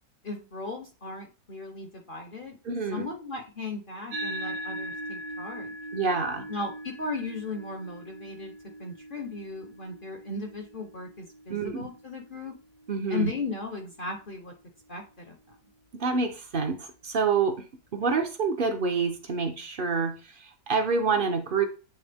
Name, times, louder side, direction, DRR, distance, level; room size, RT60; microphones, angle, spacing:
voice 1, 0.2-2.6 2.9-5.7 6.5-8.5 8.8-12.5 13.1-14.5 14.9-15.6, left 3 dB, 50° left, 4 dB, 0.6 m, -36 dB
voice 2, 2.6-3.1 5.9-6.5 11.5-11.9 12.9-13.3 15.9-17.6 17.9-21.6, right 5 dB, 50° right, 6 dB, 0.6 m, -27 dB
sound 1, 4.1-12.8, equal, 75° right, 1.4 m, -40 dB
8.4 x 3.6 x 3.4 m, 0.34 s
omnidirectional pair, 1.8 m